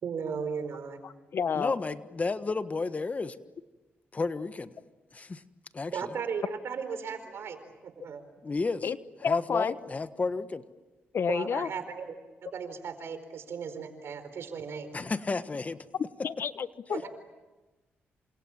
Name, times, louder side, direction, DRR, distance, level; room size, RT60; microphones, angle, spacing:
voice 1, 0.0-1.0 5.9-7.6 7.8-8.2 11.3-12.1 12.4-14.9 16.9-17.1, right 6 dB, 70° right, 9 dB, 4.5 m, -36 dB
voice 2, 1.0-1.7 8.8-9.0 9.2-9.7 11.1-11.7 16.2-17.1, left 6 dB, 60° left, 13 dB, 1.1 m, -30 dB
voice 3, 1.6-3.4 4.1-4.7 5.1-5.4 5.7-6.1 8.4-8.9 9.2-10.6 14.9-15.8, left 3 dB, 35° left, 11 dB, 1.4 m, -32 dB
28.5 x 27.5 x 7.4 m, 1.2 s
cardioid pair, 80°, 4 cm